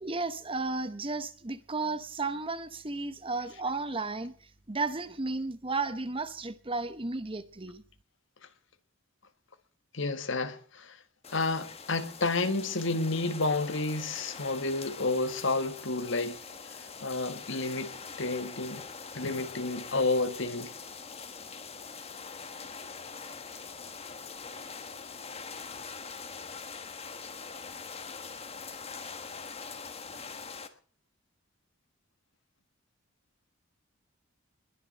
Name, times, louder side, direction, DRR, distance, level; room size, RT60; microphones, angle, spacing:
voice 1, 0.0-4.3 4.7-7.8, right 3 dB, 25° right, 0.9 m, -33 dB
voice 2, 9.9-11.0 11.3-16.4 17.0-17.9 18.2-18.8 19.1-20.7, left 3 dB, 60° left, 1.6 m, -30 dB
sound 1, 11.2-30.7, left 5 dB, 30° left, 1.4 m, -43 dB
21.5 x 7.3 x 7.6 m
head